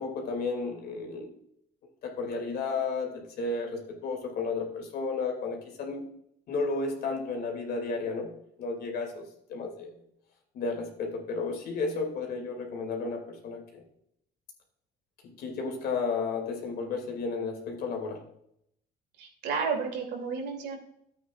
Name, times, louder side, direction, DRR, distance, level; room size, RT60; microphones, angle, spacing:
voice 1, 0.0-1.4 2.0-6.0 6.5-8.3 8.6-10.0 10.5-13.8 15.4-18.2, left 4 dB, 70° left, 2 dB, 2.7 m, -33 dB
voice 2, 19.2-20.8, right 5 dB, 80° right, 1 dB, 2.9 m, -32 dB
13.5 x 8.5 x 2.5 m, 0.74 s
cardioid pair, 110°, 17 cm